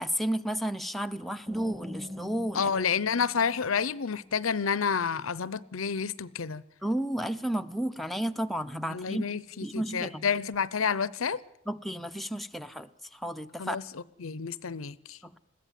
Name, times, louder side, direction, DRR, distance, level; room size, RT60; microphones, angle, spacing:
voice 1, 0.0-2.7 6.8-9.3 9.6-10.3 11.7-13.8 15.2-15.4, right 1 dB, ahead, 0.7 m, -32 dB
sound 1, 1.5-4.3, left 1 dB, 15° right, 2.4 m, -44 dB
voice 2, 2.5-6.6 8.9-11.4 13.6-15.2, left 6 dB, 75° left, 0.7 m, -30 dB
21.0 x 15.0 x 9.3 m
head